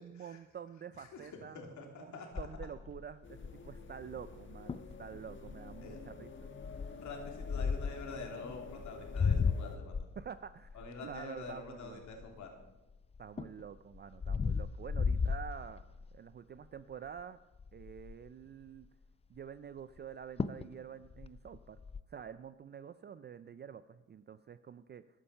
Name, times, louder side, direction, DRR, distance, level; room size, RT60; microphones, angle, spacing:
voice 1, 0.0-6.3 10.2-12.0 13.2-15.9 16.1-17.4 17.7-18.9 19.3-21.8 22.1-25.0, right 8 dB, 35° right, 14 dB, 0.4 m, -48 dB
voice 2, 1.0-2.5 5.8-6.0 7.0-10.0 10.7-12.5, left 4 dB, 70° left, 2 dB, 2.9 m, -46 dB
sound 1, 2.4-3.8 4.4-4.5 4.7-5.0 5.5-5.8 6.6-8.1 8.8-12.7 13.1-16.2 16.6-16.9 17.2-17.3 17.6-18.3 20.0-20.1 20.4-20.7 21.0-22.0, left 5 dB, 20° left, 0.4 m, -35 dB
sound 2, 3.2-9.8, left 4 dB, 40° left, 1.4 m, -49 dB
13.5 x 10.0 x 5.6 m, 1.0 s
cardioid pair, 90°, 30 cm